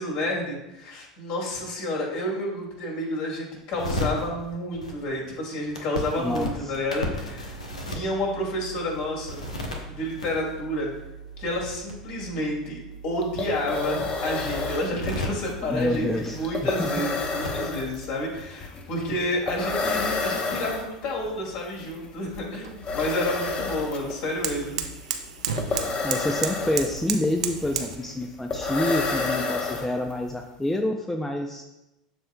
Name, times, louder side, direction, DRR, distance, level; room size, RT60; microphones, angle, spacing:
voice 1, 0.0-7.5 7.9-9.5 9.9-10.9 11.4-24.8, left 1 dB, 55° left, -2 dB, 2.5 m, -30 dB
sound 1, 3.7-18.2, equal, 80° left, 1.1 m, -36 dB
voice 2, 6.2-6.7 15.7-16.9 26.0-31.6, left 1 dB, 5° left, 4 dB, 0.6 m, -27 dB
sound 2, 12.9-13.0 13.2-30.3, left 4 dB, 30° left, 1.0 m, -31 dB
sound 3, 21.2-28.0, right 7 dB, 70° right, 0.6 m, -34 dB
12.5 x 4.3 x 2.3 m, 0.93 s
figure-of-eight pair, 75°, 4 cm